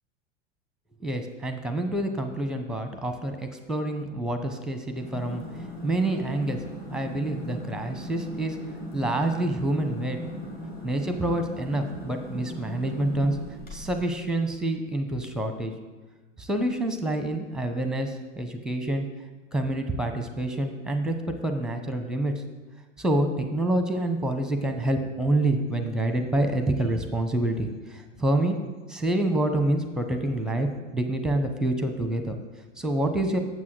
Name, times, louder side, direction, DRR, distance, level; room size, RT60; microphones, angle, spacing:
voice 1, 1.0-5.4 5.8-6.6 6.9-8.6 8.9-10.2 10.8-13.4 13.7-15.7 16.4-19.0 19.5-22.3 23.0-28.6 28.9-30.7 30.9-32.4 32.8-33.4, right 1 dB, ahead, 6 dB, 0.9 m, -27 dB
sound 1, 4.9-14.1, equal, 25° left, 2.8 m, -38 dB
7.4 x 6.1 x 6.2 m, 1.3 s
hypercardioid pair, 90°, 35 cm